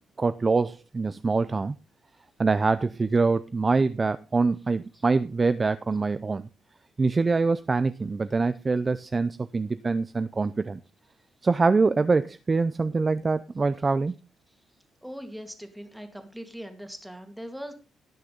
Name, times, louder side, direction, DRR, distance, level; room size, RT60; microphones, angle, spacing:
voice 1, 0.2-1.8 2.4-6.5 7.0-10.8 11.4-14.1, right 4 dB, 25° right, 0.5 m, -24 dB
voice 2, 15.0-17.7, equal, ahead, 2.3 m, -40 dB
18.5 x 6.5 x 3.9 m
cardioid pair, 140°, 0 cm